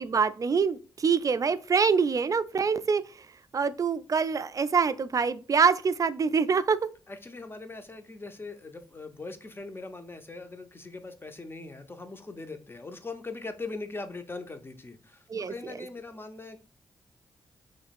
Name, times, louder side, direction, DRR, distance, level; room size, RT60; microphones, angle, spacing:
voice 1, 0.0-3.3 3.5-6.8 15.3-15.9, right 5 dB, 40° right, 0.3 m, -25 dB
voice 2, 7.1-16.6, left 3 dB, 25° left, 0.7 m, -41 dB
3.1 x 2.8 x 4.1 m
cardioid pair, 60°, 9 cm